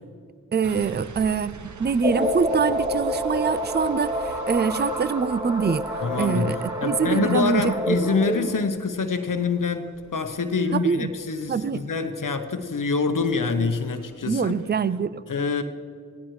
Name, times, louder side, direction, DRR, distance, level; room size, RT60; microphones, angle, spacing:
voice 1, 0.5-5.9 6.2-7.7 10.7-11.1 11.5-11.8 14.3-15.2, right 6 dB, 30° right, 16 dB, 0.4 m, -24 dB
sound 1, 0.6-15.1, right 4 dB, 60° right, 0.8 m, -46 dB
sound 2, 2.0-8.7, equal, 10° right, 1.1 m, -28 dB
voice 2, 6.0-6.5 6.8-14.5 15.3-15.6, left 4 dB, 70° left, 7 dB, 0.9 m, -26 dB
16.5 x 15.0 x 3.2 m, 2.3 s
cardioid pair, 45°, 33 cm